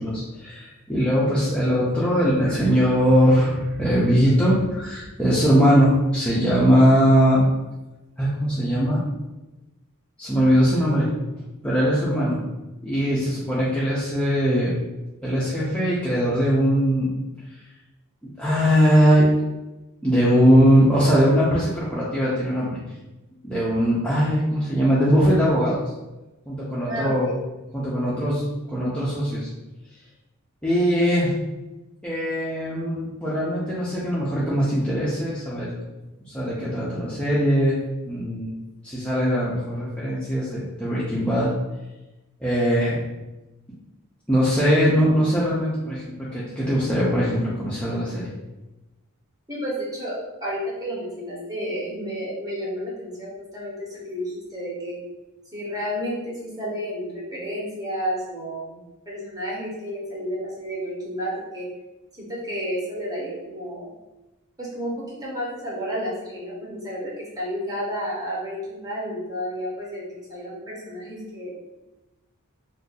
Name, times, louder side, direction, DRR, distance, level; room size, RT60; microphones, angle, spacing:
voice 1, 0.0-7.5 8.2-9.0 10.2-11.1 11.4-12.4 12.8-14.7 15.2-17.1 18.4-19.3 20.0-22.8 23.4-25.8 26.5-27.3 27.7-29.5 30.6-31.3 32.0-35.7 36.2-37.8 38.1-38.5 38.8-41.5 42.4-43.0 44.3-48.3, equal, 5° left, -9 dB, 0.5 m, -21 dB
voice 2, 26.9-27.4 49.5-55.0 55.5-58.8 59.1-61.7 62.1-63.9 64.6-71.5, equal, 15° right, -6 dB, 1.0 m, -31 dB
2.6 x 2.5 x 3.9 m, 1.0 s
head